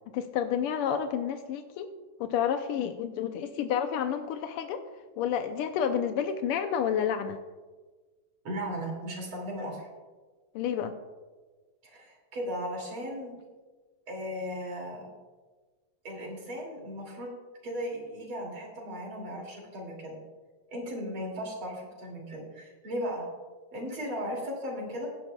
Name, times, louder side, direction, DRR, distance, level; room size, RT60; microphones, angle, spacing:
voice 1, 0.1-1.9 2.2-4.8 5.2-7.4 10.5-10.9, left 8 dB, 85° left, 7 dB, 1.6 m, -30 dB
voice 2, 8.4-9.9 11.8-13.3 14.1-15.1 16.0-17.3 17.6-20.2 20.7-23.2 23.7-25.1, equal, 65° right, -1 dB, 3.5 m, -36 dB
16.5 x 11.5 x 2.3 m, 1.3 s
omnidirectional pair, 2.4 m